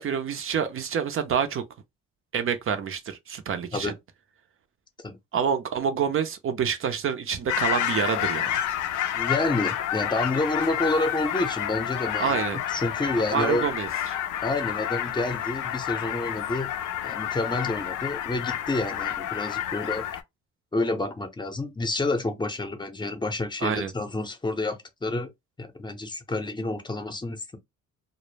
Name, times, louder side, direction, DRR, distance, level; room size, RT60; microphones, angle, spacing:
voice 1, 0.0-1.6 2.3-3.9 5.3-8.6 12.2-12.6 13.2-14.2 23.6-23.9, right 7 dB, 45° right, 0.5 m, -27 dB
sound 1, 7.5-20.2, left 11 dB, 85° left, 0.5 m, -29 dB
voice 2, 9.1-12.4 12.7-13.6 14.4-16.7 17.0-20.0 20.7-25.3 25.6-27.6, left 2 dB, 15° left, 0.6 m, -29 dB
2.0 x 2.0 x 3.1 m
cardioid pair, 90°, 30 cm